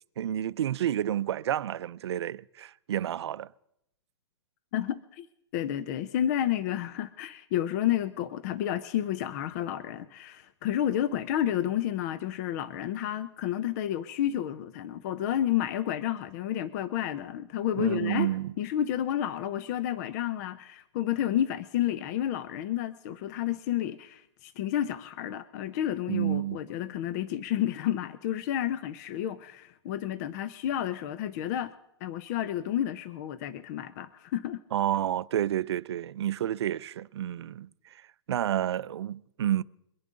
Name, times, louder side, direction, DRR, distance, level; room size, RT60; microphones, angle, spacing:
voice 1, 0.2-3.5 17.8-18.5 26.1-26.6 34.7-39.6, right 11 dB, 70° right, 0.5 m, -30 dB
voice 2, 4.7-5.3 5.5-18.3 18.6-31.7 32.0-34.6, left 11 dB, 40° left, 0.6 m, -30 dB
23.0 x 10.5 x 3.7 m
hypercardioid pair, 145°, 15 cm